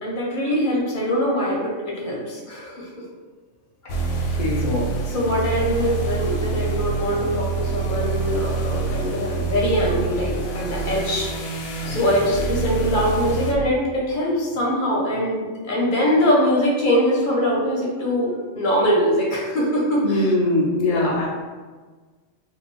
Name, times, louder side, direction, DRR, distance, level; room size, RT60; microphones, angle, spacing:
voice 1, 0.0-2.9 3.8-4.3 4.6-11.3 11.8-20.3 20.8-21.1, equal, 45° left, -4 dB, 0.8 m, -23 dB
sound 1, 3.9-13.5, right 4 dB, 90° left, 1.1 m, -26 dB
voice 2, 4.4-4.7 20.0-21.3, left 2 dB, 65° left, -5 dB, 0.3 m, -21 dB
2.6 x 2.6 x 3.1 m, 1.4 s
omnidirectional pair, 1.5 m